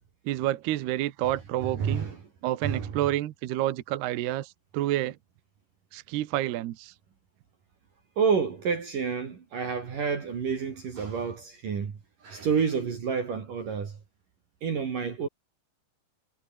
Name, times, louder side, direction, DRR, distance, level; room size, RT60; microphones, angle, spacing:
voice 1, 0.3-2.1 2.4-5.2 5.9-6.9, right 14 dB, 70° right, 3.0 m, -29 dB
voice 2, 1.6-2.2 2.6-2.9 8.2-12.0 12.2-14.0 14.6-15.3, right 6 dB, 50° right, 4.4 m, -29 dB
omnidirectional pair, 5.2 m